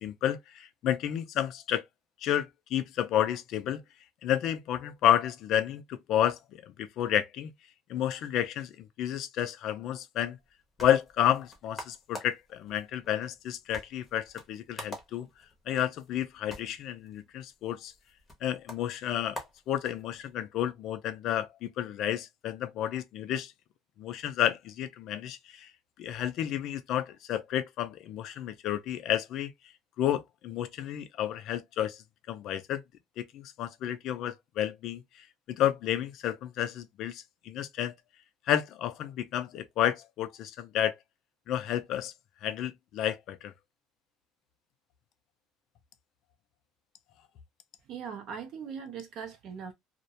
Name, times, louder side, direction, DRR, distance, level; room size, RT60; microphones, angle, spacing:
voice 1, 0.0-1.8 2.2-3.8 4.2-7.5 7.9-10.4 10.8-15.3 15.7-17.9 18.4-19.4 19.7-23.5 24.0-25.7 26.0-29.5 30.0-32.8 33.2-35.0 35.5-37.9 38.5-40.9 41.5-42.1 42.4-43.5, left 11 dB, 45° left, 0.4 m, -31 dB
sound 1, 10.4-20.3, left 1 dB, 10° left, 0.7 m, -48 dB
voice 2, 47.9-49.7, right 7 dB, 45° right, 0.4 m, -40 dB
2.3 x 2.1 x 2.7 m
cardioid pair, 165°, 0 cm